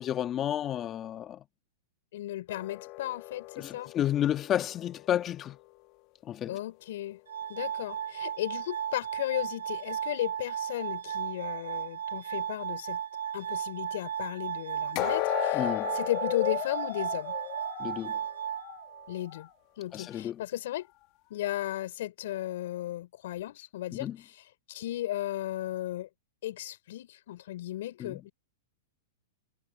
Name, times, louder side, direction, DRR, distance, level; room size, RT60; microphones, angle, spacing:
voice 1, 0.0-1.4 3.6-5.6 6.2-6.6 15.5-15.9 17.8-18.2 19.9-20.4 23.9-24.2 28.0-28.2, left 11 dB, 30° left, 1.5 m, -31 dB
voice 2, 2.1-3.9 6.5-7.2 7.5-13.0 13.3-15.7 15.9-17.3 19.1-19.5 19.8-20.9 21.3-24.4 24.7-26.1 26.4-28.3, left 14 dB, 65° left, 4.6 m, -35 dB
sound 1, 2.5-5.6 14.9-18.9 19.2-19.4 20.0-20.1, left 22 dB, 45° left, 1.3 m, -35 dB
Glass, 7.3-19.3, right 9 dB, 80° right, 3.5 m, -35 dB
hypercardioid pair, 120°, 0 cm